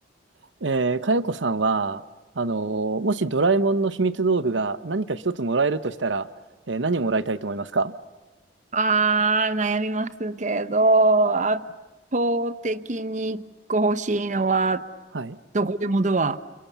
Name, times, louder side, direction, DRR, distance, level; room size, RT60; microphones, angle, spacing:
voice 1, 0.6-2.0 2.4-6.3 6.7-7.9 15.1-15.4, right 3 dB, 90° right, 14 dB, 1.0 m, -24 dB
voice 2, 8.7-11.6 12.1-13.4 13.7-14.8 15.5-16.4, right 3 dB, 40° right, 13 dB, 0.9 m, -22 dB
29.0 x 28.5 x 7.0 m, 1.2 s
head